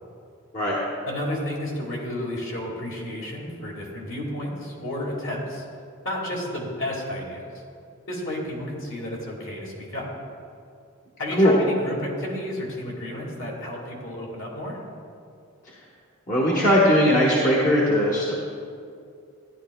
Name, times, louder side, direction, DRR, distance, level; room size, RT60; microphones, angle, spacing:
voice 1, 1.1-5.7 6.0-7.5 8.1-10.1 11.2-14.8, left 1 dB, 60° left, -2 dB, 1.9 m, -31 dB
voice 2, 16.3-18.3, equal, 35° left, -6 dB, 1.1 m, -19 dB
13.5 x 10.5 x 2.2 m, 2.4 s
head